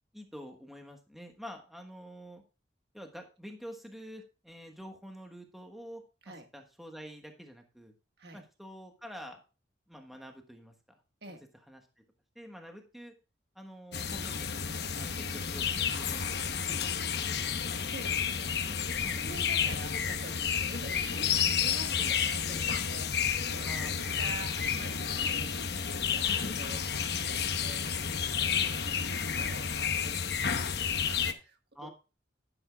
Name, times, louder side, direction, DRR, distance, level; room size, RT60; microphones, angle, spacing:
voice 1, 0.1-2.4 2.9-7.9 8.3-9.4 9.9-11.0 11.7-11.8 12.3-13.1 13.5-14.6 15.0-16.3 16.7-17.3 19.0-19.2 23.6-23.9 25.2-25.4 26.3-26.8 28.5-28.8 31.7-31.9, equal, ahead, 3 dB, 1.3 m, -47 dB
sound 1, 13.9-31.3, left 7 dB, 60° left, 1.0 m, -31 dB
voice 2, 17.7-25.8 26.1-31.9, right 2 dB, 65° right, 6 dB, 1.6 m, -48 dB
11.5 x 10.0 x 2.3 m, 0.31 s
head